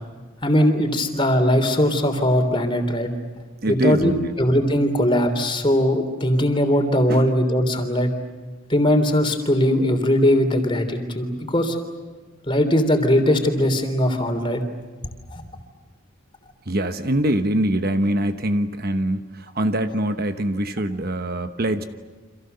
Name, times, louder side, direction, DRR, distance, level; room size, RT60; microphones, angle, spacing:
voice 1, 0.4-3.1 3.7-8.1 8.7-11.8 12.5-14.6 15.3-15.4, equal, 25° left, 6 dB, 3.4 m, -20 dB
voice 2, 3.6-4.3 7.1-7.3 16.7-21.8, right 1 dB, 45° right, 8 dB, 1.1 m, -23 dB
30.0 x 26.5 x 6.9 m, 1.4 s
head